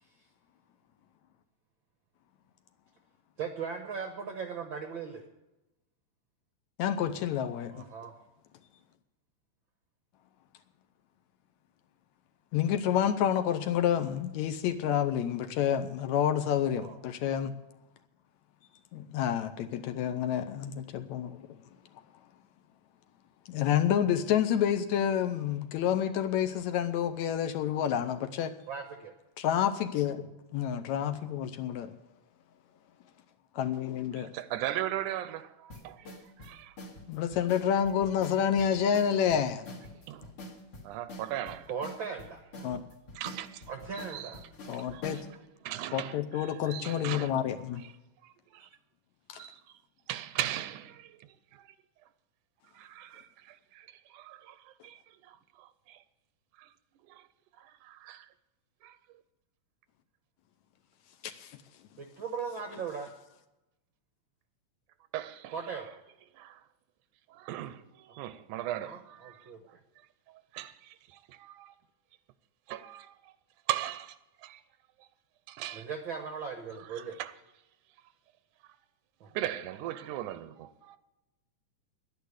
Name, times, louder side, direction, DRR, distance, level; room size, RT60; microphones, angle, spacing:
voice 1, 3.4-5.3 7.7-8.1 16.8-17.0 28.7-29.1 41.7-42.4 43.7-44.4 62.0-63.1 65.5-65.9 68.6-69.8 75.7-77.2 79.2-79.3, right 6 dB, 65° right, 1.2 m, -38 dB
voice 2, 6.8-7.8 12.5-17.5 18.9-21.6 23.5-28.5 29.4-30.3 30.5-31.9 33.6-34.3 37.1-39.8 42.6-42.8 44.7-45.3 45.9-47.8 49.3-49.4 61.2-61.6, left 9 dB, 75° left, 1.9 m, -29 dB
voice 3, 34.1-36.8 40.1-40.3 40.8-41.7 42.6-42.8 43.2-43.7 43.9-44.3 44.7-45.2 45.6-47.3 48.2-48.7 49.3-49.8 50.1-51.8 52.7-56.0 56.6-56.7 57.0-57.3 57.6-58.3 58.8-59.0 65.1-65.8 66.3-66.6 67.3-69.5 70.3-71.8 72.7-73.3 73.7-74.6 75.0-75.1 75.5-75.9 76.8-77.3 79.3-81.0, right 13 dB, 85° right, 2.2 m, -39 dB
sound 1, 35.7-45.3, left 1 dB, 45° left, 2.8 m, -46 dB
10.5 x 10.5 x 8.1 m
omnidirectional pair, 3.6 m